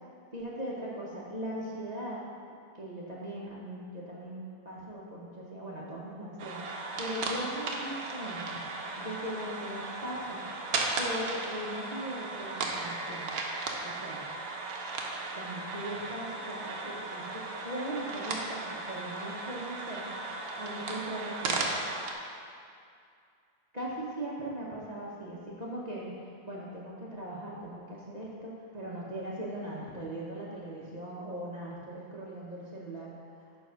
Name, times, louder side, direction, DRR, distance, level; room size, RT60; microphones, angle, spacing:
voice 1, 0.3-2.3 2.7-8.6 9.0-10.4 11.0-13.3 13.8-14.2 15.3-20.1 20.6-21.7 23.7-33.1 33.4-33.5, right 1 dB, 30° right, -5 dB, 0.9 m, -39 dB
sound 1, 6.4-22.1, right 3 dB, 70° right, 1.2 m, -36 dB
9.3 x 3.5 x 5.7 m, 2.4 s
omnidirectional pair, 1.6 m